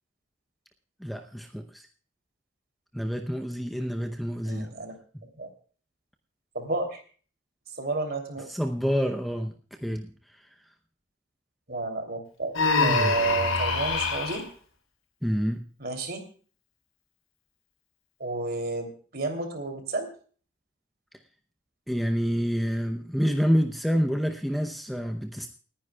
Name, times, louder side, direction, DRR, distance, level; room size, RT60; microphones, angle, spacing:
voice 1, 1.0-1.9 2.9-4.7 8.5-9.5 9.8-10.4 15.2-15.6 21.9-25.5, equal, ahead, 5 dB, 0.7 m, -28 dB
voice 2, 4.4-4.9 5.4-5.5 6.5-7.0 7.8-8.5 11.7-12.5 12.8-14.4 15.8-16.2 18.2-20.1, right 3 dB, 50° right, 5 dB, 3.0 m, -31 dB
Human voice, 12.5-14.4, left 3 dB, 80° left, 4.8 m, -24 dB
29.0 x 10.0 x 2.3 m, 0.41 s
head